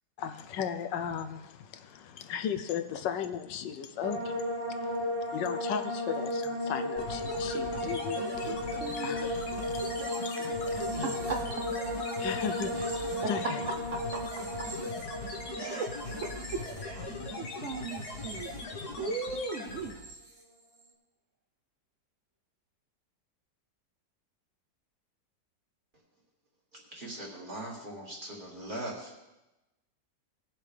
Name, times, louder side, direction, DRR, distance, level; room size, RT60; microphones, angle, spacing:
voice 1, 0.2-11.2 12.1-13.6, left 8 dB, 80° left, 1.3 m, -37 dB
sound 1, 4.0-19.2 19.5-20.1, left 1 dB, 85° right, 2.7 m, -35 dB
sound 2, 7.0-20.1, left 2 dB, 60° left, 1.6 m, -40 dB
voice 2, 8.5-9.4 9.6-9.8 11.0-11.6 12.7-12.9 13.2-13.3 13.9-14.2 15.5-18.5 19.0-20.0, right 4 dB, 55° right, 0.9 m, -38 dB
voice 3, 26.7-29.1, right 1 dB, 30° right, 2.3 m, -40 dB
19.0 x 7.3 x 3.4 m
omnidirectional pair, 1.9 m